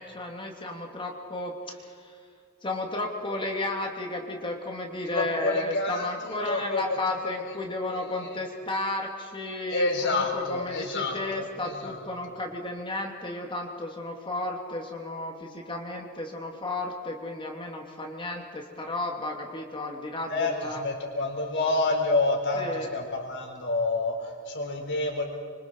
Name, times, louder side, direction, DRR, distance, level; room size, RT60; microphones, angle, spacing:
voice 1, 0.0-2.2 2.6-20.8 22.5-22.9, left 2 dB, 25° left, 1 dB, 2.5 m, -33 dB
voice 2, 5.1-7.6 7.9-8.4 9.7-12.0 20.3-25.2, left 2 dB, 60° left, 2 dB, 4.1 m, -29 dB
26.5 x 25.0 x 4.6 m, 2.3 s
head